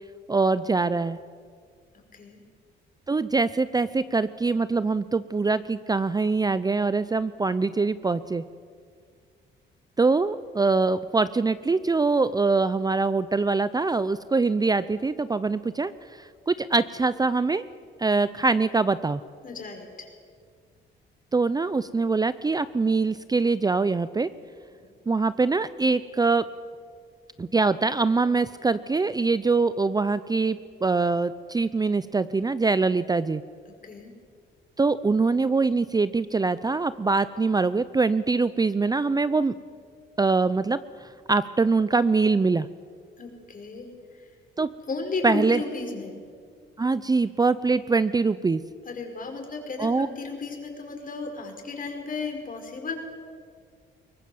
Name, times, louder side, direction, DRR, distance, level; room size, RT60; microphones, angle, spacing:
voice 1, 0.3-1.2 3.1-8.4 10.0-17.6 18.0-19.2 21.3-24.3 25.1-26.4 27.4-33.4 34.8-39.5 40.2-42.7 44.6-44.7 45.2-45.6 46.8-48.6 49.8-50.1, right 3 dB, 20° right, 15 dB, 0.6 m, -23 dB
voice 2, 2.1-2.4 19.4-20.1 24.7-24.8 33.8-34.1 43.2-44.3 44.9-46.2 48.9-52.9, left 4 dB, 45° left, 3 dB, 5.2 m, -34 dB
22.5 x 19.0 x 7.8 m, 2.1 s
cardioid pair, 90°, 20 cm